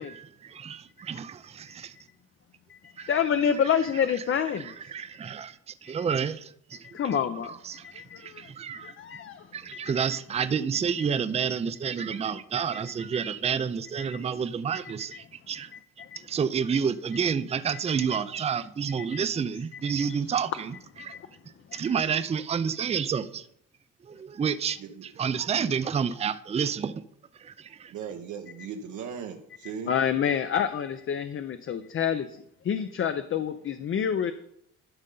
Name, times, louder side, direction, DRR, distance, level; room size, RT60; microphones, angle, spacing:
voice 1, 0.0-2.0 3.0-3.2 4.5-6.9 7.5-9.0 9.5-15.7 16.2-20.8 21.0-21.2 21.7-23.5 24.0-27.0 27.3-27.9, right 7 dB, 20° right, 0.4 m, -30 dB
voice 2, 2.7-4.8 6.8-7.5 7.8-9.8 14.1-14.2 15.7-16.2 21.0-21.2 21.7-21.8 29.9-34.3, left 8 dB, 45° left, 0.6 m, -28 dB
voice 3, 27.9-29.9, right 7 dB, 75° right, 0.9 m, -38 dB
12.0 x 5.4 x 3.8 m
cardioid pair, 90°, 30 cm